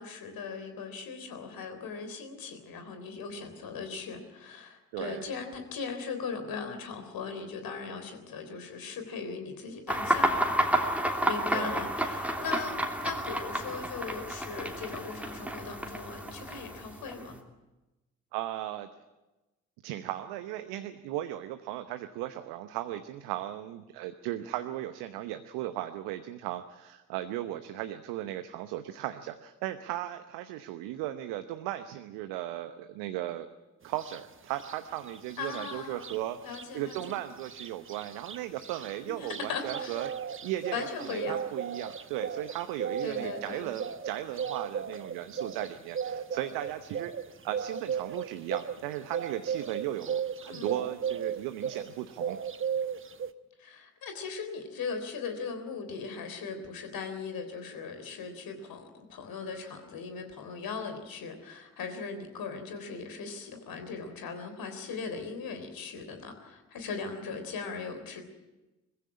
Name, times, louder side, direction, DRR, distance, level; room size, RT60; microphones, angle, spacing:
voice 1, 0.0-10.4 10.7-17.4 35.4-36.1 36.4-37.2 39.1-40.0 40.7-41.4 43.0-43.7 50.5-50.9 53.6-68.2, left 5 dB, 60° left, 7 dB, 3.7 m, -39 dB
voice 2, 4.9-5.3 11.5-11.8 18.3-18.9 19.8-33.5 33.8-36.4 36.7-47.1 47.4-52.4, right 13 dB, 70° right, 9 dB, 1.0 m, -36 dB
sound 1, 9.9-17.4, right 1 dB, 5° right, 3.1 m, -31 dB
sound 2, 34.0-34.2 34.6-36.2 36.5-36.6 36.9-51.9 52.2-53.3, right 7 dB, 30° right, 1.1 m, -36 dB
21.0 x 15.5 x 9.9 m, 1.1 s
figure-of-eight pair, 40°, 40 cm